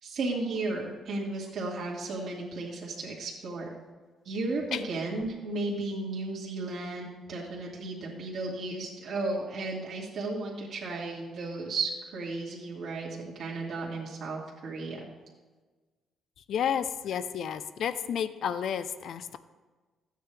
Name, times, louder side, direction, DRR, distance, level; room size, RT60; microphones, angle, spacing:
voice 1, 0.0-3.7 4.2-15.0, right 2 dB, 65° right, -5 dB, 2.4 m, -34 dB
voice 2, 16.5-19.4, left 8 dB, 70° left, 12 dB, 0.6 m, -31 dB
14.0 x 9.1 x 3.5 m, 1.3 s
cardioid pair, 90°, 0 cm